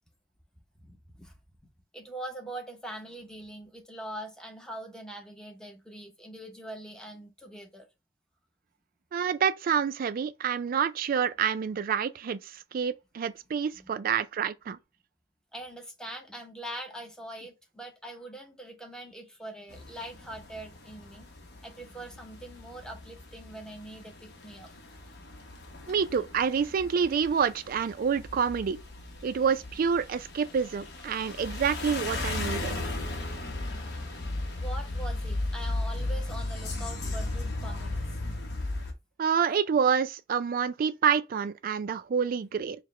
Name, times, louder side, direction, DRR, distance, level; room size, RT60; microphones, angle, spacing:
voice 1, 0.8-1.4 1.9-7.9 13.8-13.9 15.5-21.3 21.6-24.7 33.7-33.8 34.3-38.1, right 1 dB, 5° left, 0.7 m, -43 dB
voice 2, 9.1-14.8 25.9-28.8 29.2-32.7 39.2-42.8, right 7 dB, 50° right, 0.3 m, -28 dB
sound 1, 19.7-38.9, left 2 dB, 60° left, 0.9 m, -36 dB
4.7 x 2.1 x 3.1 m
head